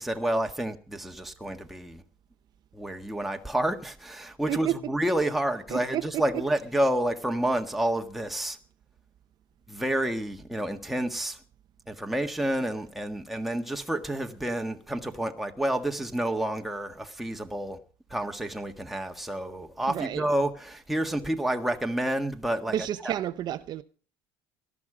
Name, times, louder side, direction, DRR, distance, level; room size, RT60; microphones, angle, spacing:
voice 1, 0.0-2.0 2.7-8.6 9.7-11.4 11.9-17.8 18.1-22.8 23.0-23.1, right 1 dB, ahead, 1.6 m, -29 dB
voice 2, 5.7-6.0 19.9-20.2 22.7-23.8, right 12 dB, 45° right, 0.7 m, -30 dB
18.0 x 13.5 x 5.0 m
cardioid pair, 145°, 10 cm